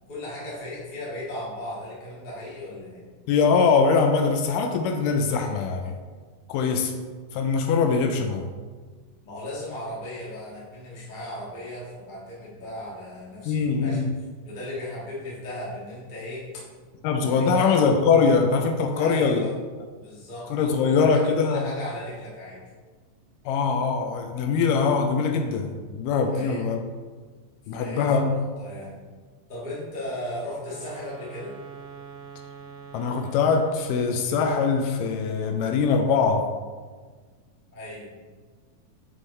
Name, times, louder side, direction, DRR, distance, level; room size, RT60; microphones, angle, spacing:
voice 1, 0.1-3.1 9.2-14.0 14.4-16.5 17.1-17.8 18.9-19.5 20.0-22.6 26.3-26.7 27.7-28.9 29.5-31.6 37.7-38.1, left 1 dB, 55° left, -7 dB, 0.5 m, -36 dB
voice 2, 3.3-6.0 6.5-6.9 7.3-8.5 13.5-14.1 17.0-19.5 20.5-21.7 23.5-26.8 27.7-28.3 32.9-36.5, left 5 dB, 80° left, 4 dB, 2.0 m, -22 dB
sound 1, 30.5-34.2, right 5 dB, 75° right, 1.5 m, -43 dB
7.5 x 4.8 x 3.1 m, 1.5 s
omnidirectional pair, 4.0 m